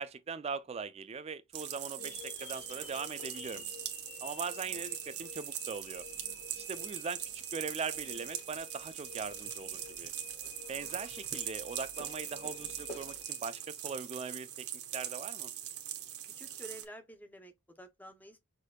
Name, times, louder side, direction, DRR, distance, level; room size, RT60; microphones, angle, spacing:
voice 1, 0.0-3.6 4.2-6.1 6.6-10.1 10.7-14.7 14.9-15.5, right 5 dB, 30° right, 0.3 m, -40 dB
sound 1, 1.5-16.8, right 11 dB, 85° right, 1.0 m, -41 dB
sound 2, 2.0-14.1, left 7 dB, 70° left, 1.1 m, -52 dB
sound 3, 2.1-13.2, right 1 dB, 35° left, 0.9 m, -57 dB
voice 2, 16.4-18.4, right 1 dB, 10° left, 0.6 m, -50 dB
6.3 x 2.7 x 2.2 m
head